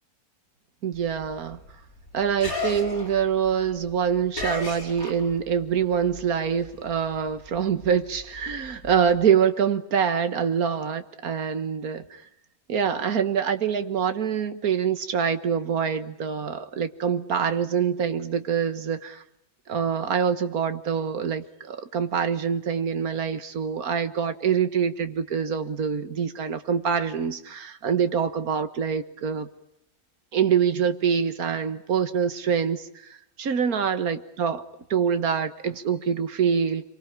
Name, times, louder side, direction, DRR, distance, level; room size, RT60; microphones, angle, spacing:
voice 1, 0.8-1.6 2.1-12.2 12.7-19.2 19.7-29.5 30.3-36.8, right 7 dB, 85° right, 10 dB, 1.9 m, -25 dB
sound 1, 0.9-5.6 5.9-9.3, left 3 dB, 80° left, 6.7 m, -36 dB
28.0 x 24.0 x 8.8 m, 0.77 s
omnidirectional pair, 1.5 m